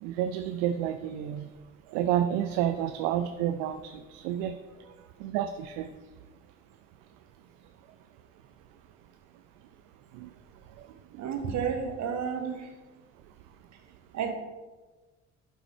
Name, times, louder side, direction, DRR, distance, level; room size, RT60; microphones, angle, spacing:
voice 1, 0.0-1.5 1.9-4.5 5.2-5.9 10.1-10.3 11.1-11.3, right 10 dB, 60° right, 10 dB, 0.5 m, -30 dB
voice 2, 11.2-12.7 14.1-14.4, right 6 dB, 45° right, 5 dB, 1.3 m, -31 dB
11.5 x 5.9 x 3.4 m, 1.3 s
figure-of-eight pair, 50°, 39 cm